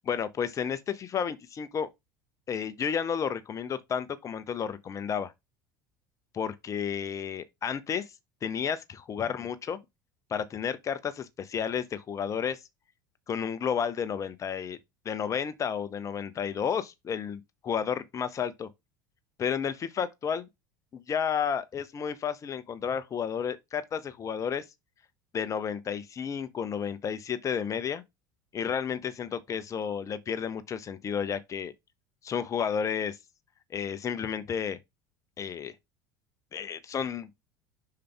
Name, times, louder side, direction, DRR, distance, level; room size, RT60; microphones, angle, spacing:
voice 1, 0.0-1.9 2.5-5.3 6.3-8.0 8.4-9.8 10.3-12.6 13.3-14.8 15.0-18.7 19.4-20.5 20.9-24.6 25.3-28.0 28.5-31.7 32.2-33.2 33.7-34.8 35.4-35.7 36.5-37.3, left 7 dB, 30° left, 0.8 m, -32 dB
5.8 x 5.0 x 3.4 m
figure-of-eight pair, 70°, 11 cm